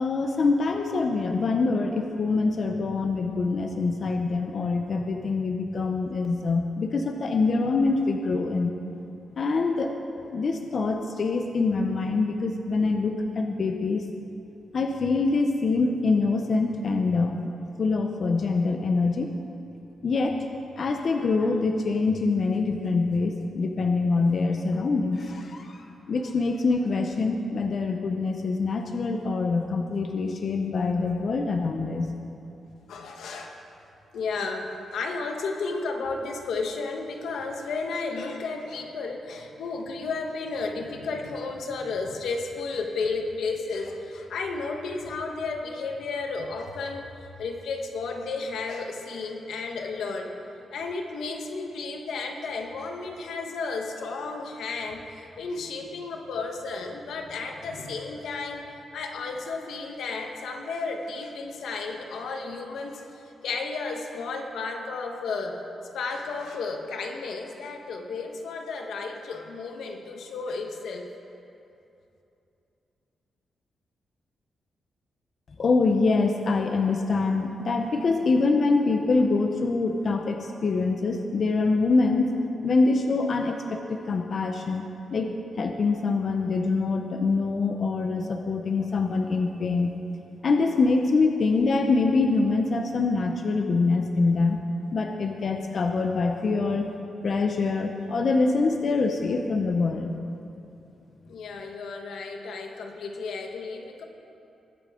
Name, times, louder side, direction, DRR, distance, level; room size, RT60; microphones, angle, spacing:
voice 1, 0.0-8.7 9.3-10.0 10.3-14.1 14.7-17.4 17.8-19.3 20.0-20.4 20.8-25.7 26.1-32.1 75.6-82.4 82.6-84.8 85.1-85.3 85.6-90.0 90.4-94.6 94.9-96.9 97.2-100.2, left 3 dB, 40° left, 4 dB, 0.6 m, -25 dB
voice 2, 32.9-33.6 34.1-50.3 50.7-65.6 65.9-71.1 101.3-104.0, left 4 dB, 85° left, 3 dB, 1.2 m, -33 dB
21.0 x 8.5 x 3.7 m, 2.8 s
wide cardioid pair, 170°, 0 cm